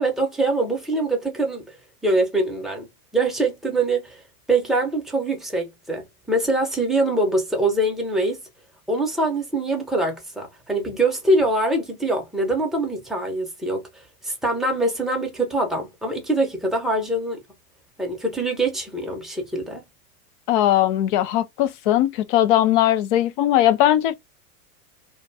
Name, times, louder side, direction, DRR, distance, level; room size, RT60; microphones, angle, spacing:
voice 1, 0.0-1.6 2.0-2.9 3.1-4.2 4.5-8.4 8.9-13.8 14.2-17.4 18.0-19.8, right 2 dB, ahead, 0.6 m, -23 dB
voice 2, 20.5-24.1, left 12 dB, 35° left, 0.4 m, -19 dB
2.5 x 2.2 x 2.6 m
hypercardioid pair, 110°, 46 cm